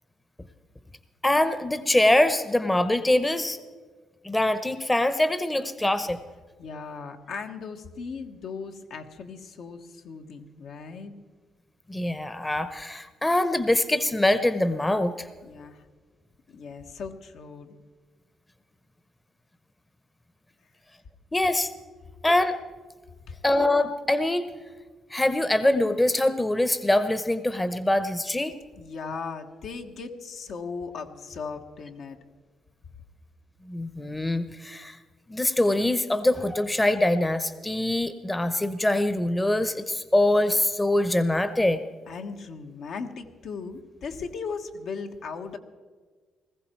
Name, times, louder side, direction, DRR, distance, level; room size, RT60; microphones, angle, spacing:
voice 1, 1.2-3.6 4.2-6.2 11.9-15.3 21.3-21.7 22.2-22.6 23.4-24.5 25.1-28.5 33.7-35.0 35.3-41.8, left 1 dB, 15° left, 12 dB, 0.8 m, -24 dB
voice 2, 6.6-11.1 15.4-15.8 16.5-17.7 23.3-23.4 28.8-32.2 42.1-45.6, left 5 dB, 70° left, 4 dB, 1.4 m, -37 dB
19.5 x 15.0 x 4.5 m, 1.5 s
cardioid pair, 90°, 0 cm